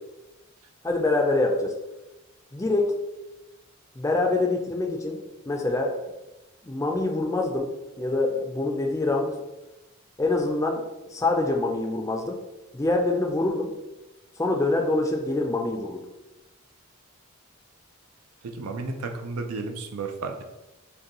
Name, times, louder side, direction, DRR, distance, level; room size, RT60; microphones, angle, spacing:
voice 1, 0.8-1.7 2.5-2.9 4.0-5.2 5.5-6.0 6.6-7.7 8.0-9.4 10.2-10.8 11.1-12.4 12.7-13.7 14.4-16.0, left 2 dB, 15° left, 2 dB, 0.4 m, -25 dB
voice 2, 18.4-20.5, right 3 dB, 90° right, 5 dB, 0.5 m, -33 dB
5.2 x 2.2 x 2.9 m, 1.0 s
head